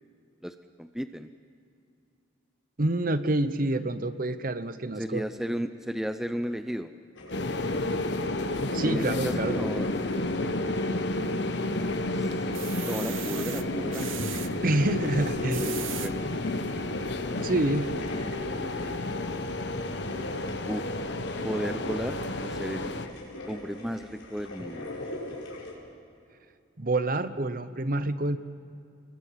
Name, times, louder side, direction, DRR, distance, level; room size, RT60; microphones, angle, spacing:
voice 1, 0.4-1.3 5.0-6.9 8.8-10.0 10.4-11.3 12.2-12.5 12.8-14.1 15.1-16.3 18.5-19.0 20.7-20.9 21.4-22.2 22.4-22.9 23.5-24.9, equal, ahead, 9 dB, 0.5 m, -34 dB
voice 2, 2.8-5.2 8.7-9.5 14.6-15.8 17.4-17.9 26.8-28.4, right 2 dB, 45° right, 12 dB, 0.9 m, -27 dB
sound 1, 7.1-25.7, left 1 dB, 85° left, 5.6 m, -41 dB
sound 2, 7.3-23.1, left 2 dB, 60° left, 1.2 m, -31 dB
sound 3, 11.2-11.8 12.3-14.5 15.3-16.1 16.7-16.8 17.2-17.3, right 13 dB, 75° right, 0.8 m, -38 dB
27.5 x 21.5 x 5.8 m, 2.5 s
head